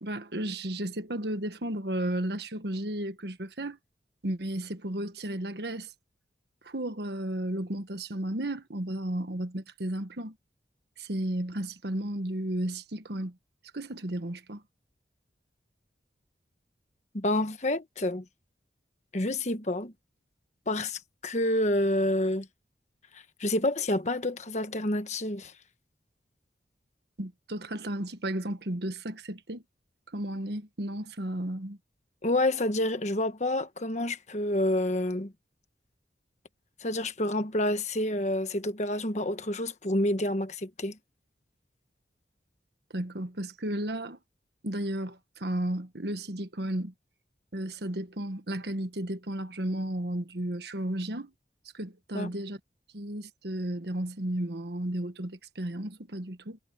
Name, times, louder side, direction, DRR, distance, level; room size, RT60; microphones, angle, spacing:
voice 1, 0.0-3.8 4.2-5.9 6.6-10.3 11.0-13.4 13.7-14.6 27.2-29.6 30.1-31.8 42.9-44.2 44.6-46.9 47.5-51.3 51.7-52.6 52.9-56.6, right 1 dB, 70° right, 1.4 m, -33 dB
voice 2, 17.1-18.2 19.1-19.9 20.7-22.5 23.1-25.5 32.2-35.3 36.8-41.0 52.1-52.3, left 1 dB, 40° left, 1.3 m, -28 dB
head